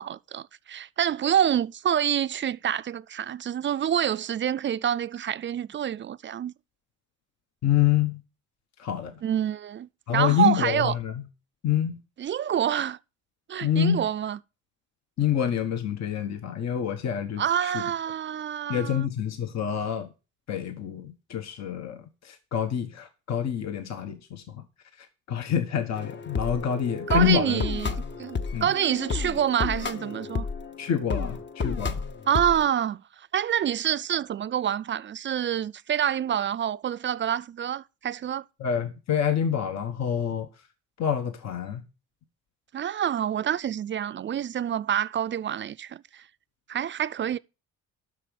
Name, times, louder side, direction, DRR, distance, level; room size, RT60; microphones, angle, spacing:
voice 1, 0.0-6.5 9.2-10.9 12.2-13.0 13.5-14.4 17.4-19.1 27.1-30.5 32.3-38.4 42.7-46.2 46.7-47.4, right 9 dB, 40° right, 0.4 m, -27 dB
voice 2, 7.6-8.2 8.8-9.1 10.1-11.1 11.6-12.0 13.6-14.0 15.2-17.8 18.7-20.1 20.5-24.6 25.0-27.6 28.5-28.7 30.8-32.0 38.6-40.5 41.0-41.8, left 9 dB, 60° left, 1.2 m, -27 dB
sound 1, 25.9-32.6, left 5 dB, 40° left, 0.9 m, -32 dB
8.5 x 6.3 x 6.9 m
cardioid pair, 90°, 30 cm